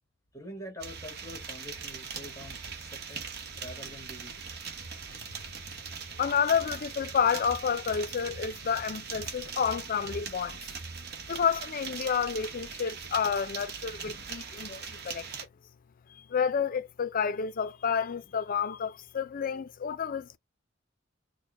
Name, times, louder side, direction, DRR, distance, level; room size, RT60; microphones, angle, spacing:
voice 1, 0.3-3.3 3.6-4.4, left 1 dB, 15° left, 1.2 m, -45 dB
sound 1, 0.8-15.5, right 6 dB, 60° right, 0.9 m, -41 dB
voice 2, 6.1-10.6 11.3-15.3 16.1-20.4, left 7 dB, 45° left, 0.4 m, -30 dB
4.3 x 2.1 x 3.3 m
head